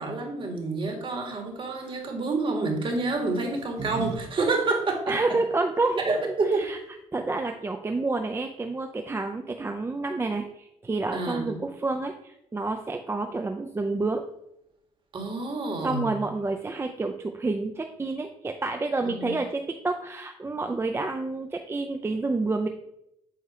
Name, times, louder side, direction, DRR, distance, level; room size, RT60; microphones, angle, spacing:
voice 1, 0.0-5.4 6.0-6.6 11.1-11.6 15.1-16.1 19.0-19.4, right 3 dB, 40° right, 2 dB, 1.6 m, -28 dB
sound 1, 1.7-2.1 3.1-4.2 4.5-4.6 6.2-6.3 6.5-6.9, right 4 dB, 55° right, 1.3 m, -38 dB
voice 2, 5.1-6.8 7.1-14.2 15.8-22.7, right 3 dB, 20° right, 4 dB, 0.5 m, -29 dB
8.0 x 2.8 x 4.9 m, 0.82 s
cardioid pair, 95°, 13 cm